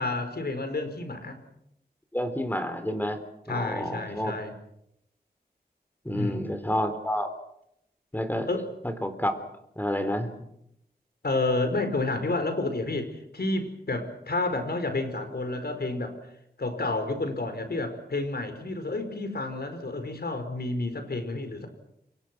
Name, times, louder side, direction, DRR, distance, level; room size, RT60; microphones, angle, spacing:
voice 1, 0.0-1.4 3.5-4.5 6.1-6.6 8.5-8.7 11.2-16.1 16.6-21.7, left 2 dB, 70° left, 8 dB, 4.7 m, -30 dB
voice 2, 2.1-3.2 3.5-4.3 6.0-7.3 8.1-8.5 8.8-9.4 9.8-10.3, equal, 10° left, 9 dB, 3.8 m, -29 dB
28.5 x 24.0 x 6.2 m, 0.79 s
wide cardioid pair, 65°, 17 cm